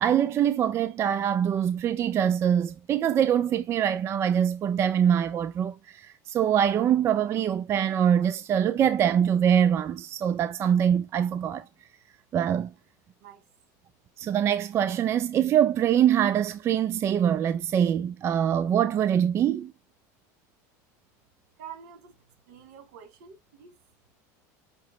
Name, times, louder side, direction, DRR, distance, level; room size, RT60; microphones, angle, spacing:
voice 1, 0.0-5.8 6.3-11.6 12.3-12.7 14.2-19.7, right 9 dB, 30° right, 0.3 m, -24 dB
voice 2, 21.6-22.1 22.5-23.8, right 8 dB, 75° right, 2.2 m, -46 dB
5.8 x 3.0 x 2.7 m
supercardioid pair, 130°, 9 cm